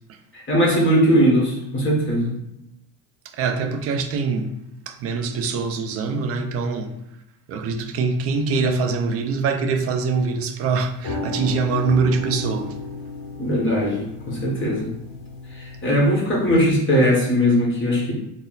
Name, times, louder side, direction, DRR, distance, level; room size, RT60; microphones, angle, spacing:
voice 1, 0.3-2.3 13.4-14.9 15.5-18.1, equal, 25° left, 1.2 m, -19 dB
voice 2, 3.4-4.5 4.9-6.9 7.5-12.8, right 4 dB, 35° right, 0.4 m, -23 dB
sound 1, 10.8-16.8, left 3 dB, 50° left, 0.7 m, -34 dB
4.0 x 2.1 x 3.9 m
cardioid pair, 125°, 45 cm